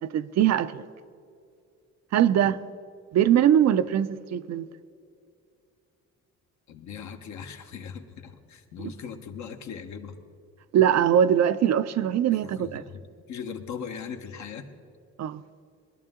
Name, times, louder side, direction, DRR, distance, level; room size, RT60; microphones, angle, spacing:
voice 1, 0.0-0.8 2.1-2.6 3.1-4.7 10.7-12.8 15.2-15.4, right 10 dB, 60° right, 0.5 m, -22 dB
voice 2, 6.7-10.2 12.4-13.0 13.3-14.7, left 7 dB, 70° left, 1.2 m, -39 dB
20.5 x 11.5 x 3.7 m
cardioid pair, 90°, 30 cm